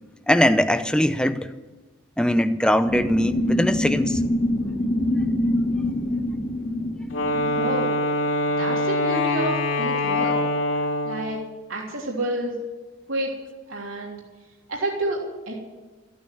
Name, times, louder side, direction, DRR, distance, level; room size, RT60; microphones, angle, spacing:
voice 1, 0.3-1.5 2.2-4.2, equal, 5° left, 9 dB, 0.6 m, -21 dB
sound 1, 2.8-7.8, left 1 dB, 30° left, 1.5 m, -25 dB
Wind instrument woodwind instrument, 7.1-11.4, left 1 dB, 80° left, 2.6 m, -24 dB
voice 2, 7.5-8.0 8.6-10.4 11.0-11.4 11.7-12.6 13.1-13.3 13.7-14.2 14.7-15.5, right 1 dB, 85° right, -2 dB, 3.2 m, -29 dB
14.5 x 9.3 x 9.8 m, 1.2 s
head